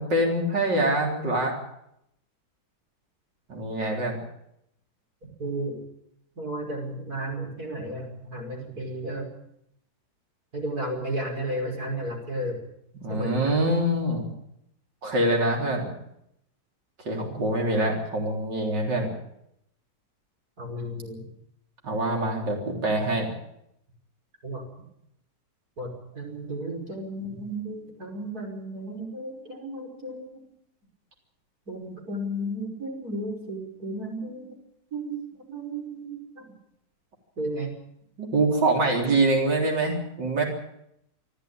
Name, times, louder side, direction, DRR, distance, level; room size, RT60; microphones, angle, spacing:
voice 1, 0.0-1.5 3.5-4.2 13.0-14.3 15.0-15.9 17.0-19.1 21.8-23.3 38.2-40.4, right 1 dB, 75° right, 1 dB, 4.4 m, -25 dB
voice 2, 5.4-5.8 6.4-9.3 10.5-12.6 13.1-13.6 20.6-21.3 24.4-24.7 25.8-30.4 31.7-34.6 34.9-36.5 37.4-37.7, right 1 dB, 55° right, 2 dB, 6.2 m, -33 dB
26.5 x 14.0 x 8.9 m, 0.77 s
omnidirectional pair, 1.9 m